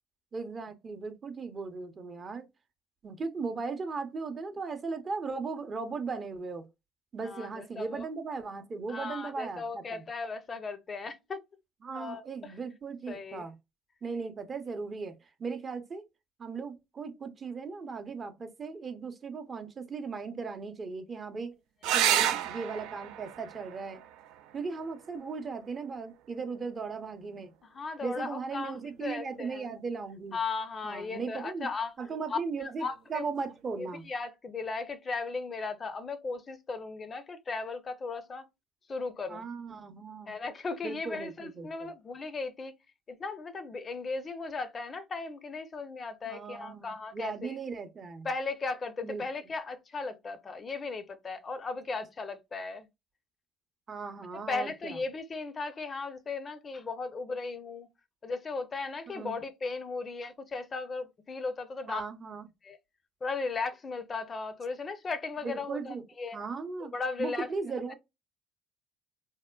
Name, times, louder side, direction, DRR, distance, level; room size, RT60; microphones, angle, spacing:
voice 1, 0.3-2.5 3.0-6.7 7.1-10.0 11.8-13.5 14.0-15.1 15.4-16.0 16.4-21.6 21.9-24.0 24.5-27.5 28.0-30.4 30.8-31.7 32.0-34.1 39.3-40.4 40.8-41.9 46.2-48.3 49.0-49.2 53.9-55.0 59.1-59.4 61.9-62.5 65.4-66.0 66.3-66.9 67.2-67.9, right 4 dB, 40° right, 0.7 m, -37 dB
voice 2, 7.2-8.1 8.9-11.4 11.9-12.5 13.1-13.4 21.9-22.3 27.7-29.7 30.3-31.9 32.3-33.3 33.8-38.5 38.9-39.5 40.3-42.7 43.1-47.5 48.2-52.9 54.5-57.9 58.2-62.0 62.6-62.8 63.2-66.4 66.9-67.5 67.9-68.0, left 4 dB, 35° left, 0.5 m, -36 dB
sound 1, 21.8-26.8 28.7-29.4 32.8-32.9 33.3-33.4, right 11 dB, 70° right, 0.4 m, -33 dB
3.5 x 2.1 x 2.2 m
hypercardioid pair, 65°, 0 cm